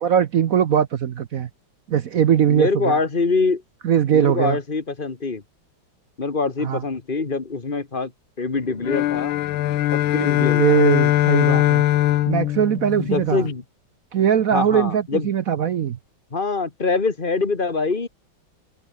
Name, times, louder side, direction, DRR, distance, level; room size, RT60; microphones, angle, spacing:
voice 1, 0.0-1.5 1.9-3.0 3.8-4.6 6.6-6.8 10.4-11.8 12.3-13.5 14.1-16.0, right 9 dB, 55° right, 1.0 m, -20 dB
voice 2, 2.5-3.6 4.1-5.4 6.2-8.1 8.4-9.4 9.9-10.8 13.0-13.6 14.5-15.3 16.3-18.1, left 4 dB, 25° left, 1.8 m, -24 dB
sound 1, 8.8-13.5, left 14 dB, 80° left, 1.6 m, -21 dB
open air
omnidirectional pair, 2.2 m